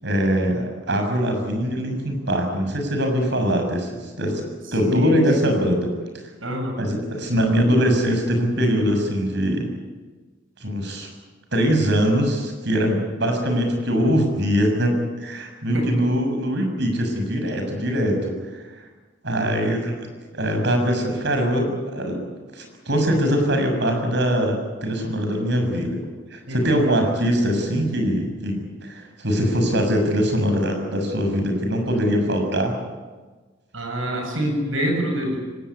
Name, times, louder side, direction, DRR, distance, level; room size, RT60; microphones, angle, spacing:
voice 1, 0.0-4.5 4.7-5.9 6.8-9.7 10.6-11.1 11.5-18.3 19.2-20.1 20.3-22.2 22.5-26.0 26.3-28.6 28.8-32.7, equal, 60° right, 4 dB, 6.6 m, -22 dB
voice 2, 4.8-5.7 6.4-6.9 15.7-16.1 19.4-19.8 26.5-26.9 33.7-35.4, equal, 85° right, 2 dB, 7.5 m, -26 dB
24.5 x 18.0 x 9.9 m, 1.3 s
head